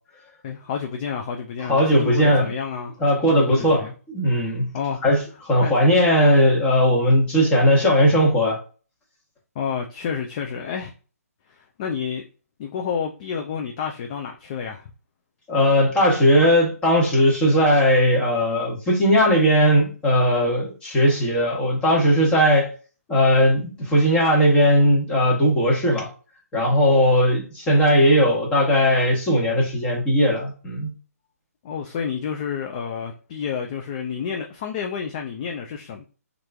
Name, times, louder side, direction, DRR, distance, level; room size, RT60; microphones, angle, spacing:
voice 1, 0.4-3.0 3.3-3.9 4.7-5.0 5.6-5.8 9.6-10.9 11.5-12.2 12.6-14.9 31.6-36.0, left 7 dB, 30° left, 0.3 m, -29 dB
voice 2, 1.7-2.5 3.0-4.7 5.0-8.6 15.5-22.7 23.1-26.1 26.5-30.9, equal, 10° left, 1.1 m, -18 dB
3.0 x 2.5 x 3.3 m
hypercardioid pair, 150°, 9 cm